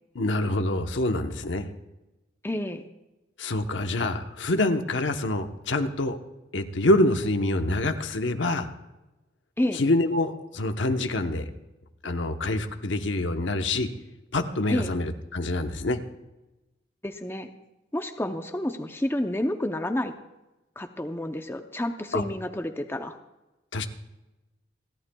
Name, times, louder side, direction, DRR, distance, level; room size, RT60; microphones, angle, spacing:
voice 1, 0.1-1.7 3.4-6.2 6.5-8.7 9.7-11.5 12.0-13.9 14.3-16.0 22.1-22.2 23.7-23.9, left 2 dB, 85° left, 7 dB, 1.0 m, -26 dB
voice 2, 2.4-2.8 9.6-9.8 14.7-14.9 17.0-17.5 17.9-20.2 20.8-23.2, left 1 dB, 15° left, 6 dB, 0.6 m, -29 dB
29.5 x 11.5 x 2.3 m, 1.0 s
head